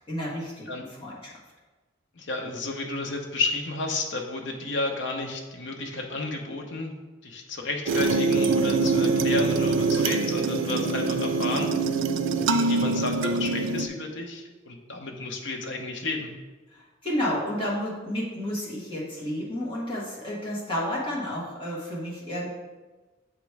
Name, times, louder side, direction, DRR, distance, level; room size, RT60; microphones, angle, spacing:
voice 1, 0.1-0.7 1.0-1.3 16.7-22.5, equal, 30° left, -6 dB, 1.7 m, -31 dB
voice 2, 2.1-7.0 7.2-12.0 12.5-16.3, left 3 dB, 70° left, 2 dB, 0.8 m, -32 dB
sound 1, 7.9-13.9, right 3 dB, 90° right, 0.4 m, -24 dB
7.4 x 3.1 x 4.7 m, 1.2 s
head